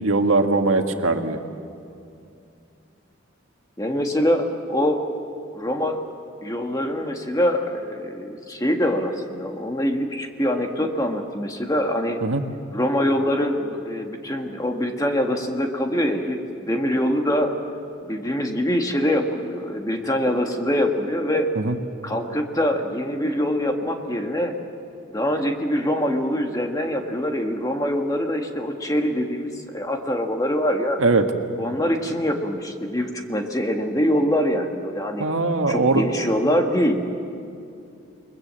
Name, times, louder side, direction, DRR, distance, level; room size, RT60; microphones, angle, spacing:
voice 1, 0.0-1.4 12.2-12.4 21.6-21.8 31.0-31.2 35.2-36.0, right 3 dB, 85° right, 5 dB, 1.7 m, -20 dB
voice 2, 3.8-5.0 5.5-6.0 6.4-12.2 12.7-17.5 18.0-21.5 22.0-24.5 25.1-31.0 31.6-35.3 35.7-37.0, equal, 15° left, 3 dB, 1.6 m, -24 dB
28.5 x 21.5 x 7.6 m, 2.5 s
head